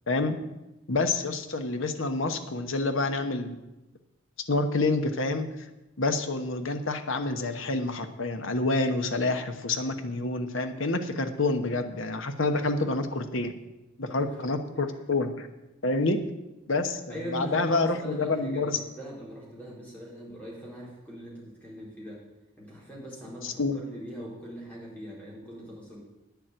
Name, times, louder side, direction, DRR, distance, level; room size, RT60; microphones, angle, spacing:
voice 1, 0.1-0.4 0.9-3.6 4.5-5.5 6.0-13.5 14.0-15.5 15.8-16.2 16.7-18.8 23.4-23.8, left 3 dB, 65° left, 7 dB, 1.1 m, -28 dB
voice 2, 17.1-22.2 22.6-26.0, equal, 5° left, -6 dB, 4.0 m, -41 dB
9.4 x 7.1 x 8.9 m, 0.99 s
head